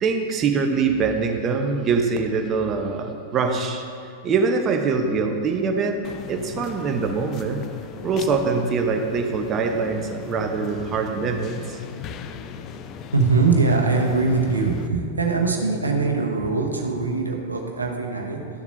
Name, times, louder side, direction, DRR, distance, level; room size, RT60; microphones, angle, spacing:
voice 1, 0.0-7.7 8.0-11.8, right 4 dB, 30° right, 4 dB, 0.9 m, -24 dB
sound 1, 6.0-14.9, left 7 dB, 35° left, 0.5 m, -38 dB
voice 2, 13.1-18.6, right 4 dB, 90° right, 1 dB, 1.0 m, -22 dB
12.5 x 7.0 x 2.8 m, 2.4 s
figure-of-eight pair, 95°, 0 cm